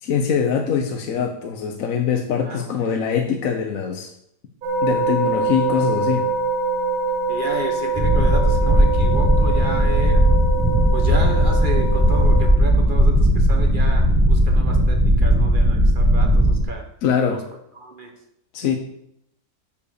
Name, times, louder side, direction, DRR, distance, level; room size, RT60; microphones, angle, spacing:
voice 1, 0.0-4.1 4.8-6.3 17.0-17.5 18.5-18.8, left 7 dB, 65° left, 4 dB, 1.1 m, -23 dB
voice 2, 2.4-2.9 7.3-10.3 10.9-16.8 17.3-17.4 17.8-18.1, right 2 dB, 35° right, 3 dB, 1.3 m, -32 dB
sound 1, 4.6-12.5, right 3 dB, 80° right, 2.0 m, -25 dB
sound 2, 8.0-16.6, equal, 10° right, 1.0 m, -17 dB
7.2 x 5.1 x 6.5 m, 0.75 s
omnidirectional pair, 1.6 m